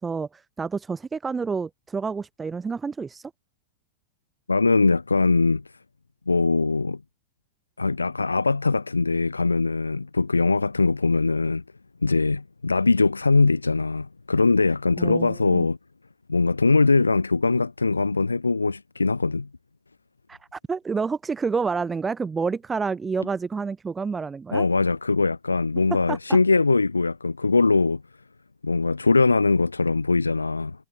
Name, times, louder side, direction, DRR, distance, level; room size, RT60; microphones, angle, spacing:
voice 1, 0.0-3.3 15.0-15.7 20.3-24.7 26.1-26.4, right 5 dB, 15° right, 3.1 m, -29 dB
voice 2, 4.5-5.6 6.3-7.0 7.8-11.6 12.0-15.8 16.3-19.5 24.5-28.0 28.6-30.9, left 3 dB, 80° left, 1.2 m, -21 dB
figure-of-eight pair, 90°, 0 cm